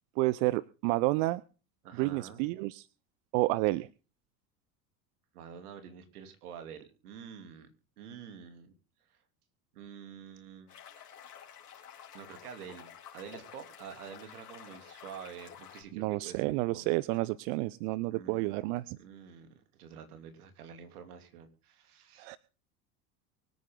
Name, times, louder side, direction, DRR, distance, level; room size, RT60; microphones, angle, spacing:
voice 1, 0.2-1.4 2.0-2.9 3.3-3.9 15.9-19.0 22.2-22.4, right 20 dB, 55° right, 20 dB, 0.7 m, -30 dB
voice 2, 1.8-2.5 5.3-7.7 8.0-8.7 9.7-10.7 12.1-16.8 18.1-18.7 19.0-22.4, right 7 dB, 75° right, 7 dB, 3.1 m, -48 dB
sound 1, 10.7-15.8, left 9 dB, 80° left, 4.3 m, -51 dB
24.0 x 9.4 x 3.8 m, 0.36 s
hypercardioid pair, 75°, 46 cm